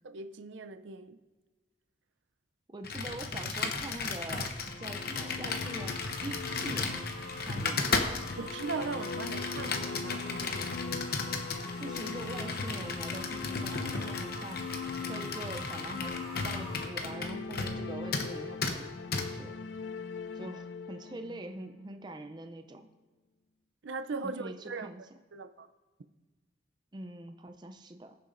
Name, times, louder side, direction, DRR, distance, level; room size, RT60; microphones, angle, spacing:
voice 1, 0.0-1.2 8.4-10.8 23.8-24.9 25.3-25.7, right 4 dB, 80° right, 0.5 m, -39 dB
voice 2, 2.7-7.1 7.4-7.9 11.8-14.7 15.1-19.5 20.4-22.9 24.2-25.0 26.9-28.2, right 1 dB, 25° right, 0.4 m, -44 dB
Computer keyboard, 2.8-17.8 18.1-18.3 18.6-18.8 19.1-19.3, left 4 dB, 50° left, 0.9 m, -35 dB
sound 1, 4.5-22.3, left 5 dB, 70° left, 0.4 m, -41 dB
sound 2, 5.5-16.8, left 1 dB, 25° left, 2.1 m, -46 dB
21.0 x 7.0 x 2.6 m
head